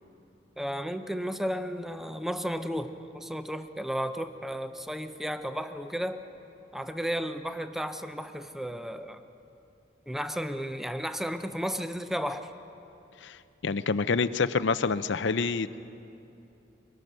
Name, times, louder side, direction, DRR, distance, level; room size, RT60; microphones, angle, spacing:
voice 1, 0.6-6.2 6.7-9.2 10.1-12.5, equal, ahead, 9 dB, 0.6 m, -33 dB
voice 2, 13.6-15.8, left 4 dB, 70° left, 14 dB, 0.6 m, -27 dB
24.0 x 18.5 x 6.1 m, 2.8 s
head